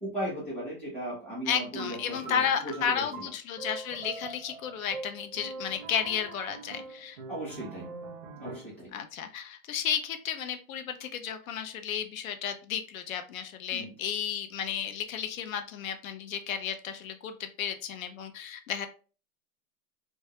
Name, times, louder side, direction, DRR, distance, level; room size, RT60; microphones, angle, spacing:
voice 1, 0.0-3.3 7.3-7.9 8.4-8.9 13.7-13.9, right 1 dB, 5° left, -10 dB, 0.6 m, -37 dB
voice 2, 1.5-7.2 8.9-18.9, left 8 dB, 75° left, 8 dB, 0.5 m, -33 dB
sound 1, 1.8-8.9, right 3 dB, 40° right, 0.5 m, -43 dB
2.2 x 2.1 x 2.7 m, 0.37 s
supercardioid pair, 175°, 42 cm